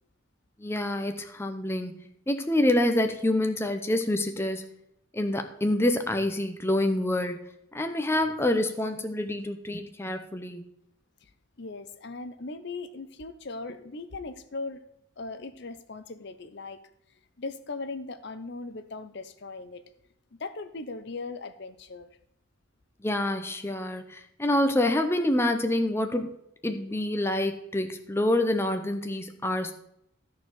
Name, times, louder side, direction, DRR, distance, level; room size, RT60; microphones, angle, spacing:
voice 1, 0.6-4.7 5.1-7.4 7.7-10.7 23.0-26.3 26.6-29.7, left 1 dB, 10° left, 6 dB, 0.7 m, -27 dB
voice 2, 11.6-14.8 15.2-16.8 17.4-19.8 20.4-22.1, left 3 dB, 55° left, 11 dB, 0.7 m, -38 dB
13.5 x 4.6 x 7.8 m, 0.78 s
head